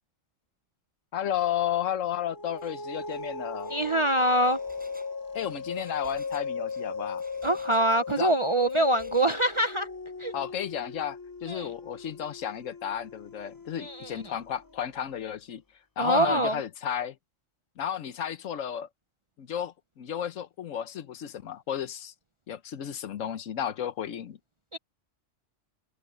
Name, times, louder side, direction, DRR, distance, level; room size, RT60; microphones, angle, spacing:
voice 1, 1.1-3.7 5.3-7.2 8.2-8.3 10.3-15.6 16.0-17.2 17.8-18.9 19.4-22.1 22.5-24.4, left 10 dB, 80° left, 1.2 m, -33 dB
sound 1, 2.2-15.0, left 4 dB, 20° left, 0.8 m, -38 dB
Engine, 2.6-2.8 3.1-3.3 3.6-8.3 8.7-9.5, equal, 5° right, 5.3 m, -56 dB
voice 2, 3.7-4.6 7.4-9.9 10.2-10.3 11.5-11.7 13.8-14.1 16.0-16.6 24.7-24.8, right 1 dB, 30° right, 0.6 m, -24 dB
omnidirectional pair, 1.3 m